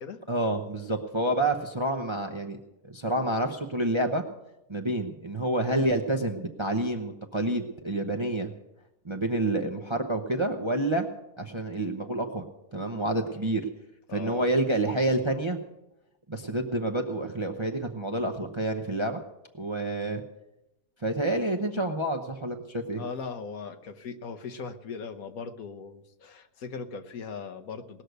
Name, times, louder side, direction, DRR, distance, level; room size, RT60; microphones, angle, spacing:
voice 1, 0.3-2.6 2.8-4.2 4.7-8.5 9.0-11.1 11.4-12.4 12.7-13.7 14.1-15.6 16.3-19.2 19.5-20.2 21.0-23.0, right 1 dB, 25° right, 4 dB, 0.7 m, -28 dB
voice 2, 14.1-14.5 23.0-28.0, left 5 dB, 65° left, 6 dB, 1.4 m, -39 dB
19.0 x 6.6 x 8.0 m, 0.93 s
omnidirectional pair, 1.7 m